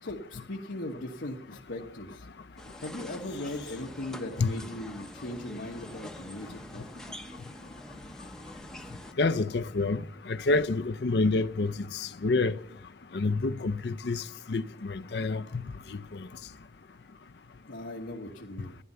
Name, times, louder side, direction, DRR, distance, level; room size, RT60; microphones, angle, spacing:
voice 1, 0.0-2.3 2.8-6.9 17.7-18.8, left 1 dB, 85° left, 1.3 m, -39 dB
sound 1, 2.6-9.1, equal, 5° left, 0.7 m, -45 dB
voice 2, 9.2-12.5 13.1-15.4 15.9-16.3, left 3 dB, 65° left, 0.5 m, -28 dB
13.0 x 11.0 x 6.8 m
head